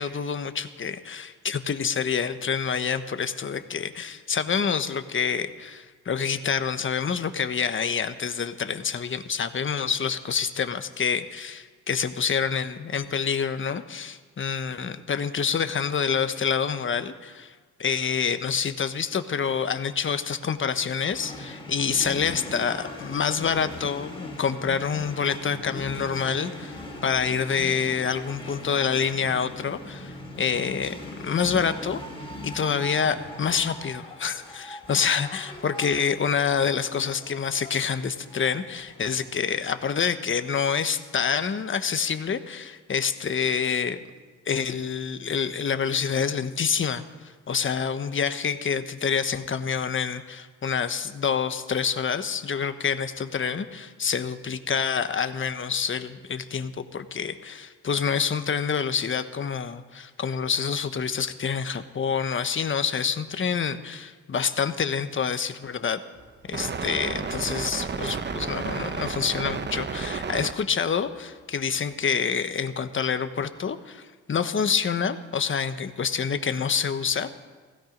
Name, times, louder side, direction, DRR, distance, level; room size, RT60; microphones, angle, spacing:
voice 1, 0.0-17.5 17.8-32.0 32.4-44.0 44.5-66.0 66.5-77.3, left 6 dB, 40° left, 10 dB, 1.2 m, -27 dB
sound 1, 21.1-39.4, left 1 dB, 15° left, 3.8 m, -40 dB
sound 2, 66.2-70.5, right 5 dB, 35° right, 1.0 m, -31 dB
16.5 x 16.0 x 5.3 m, 1.4 s
cardioid pair, 80°, 32 cm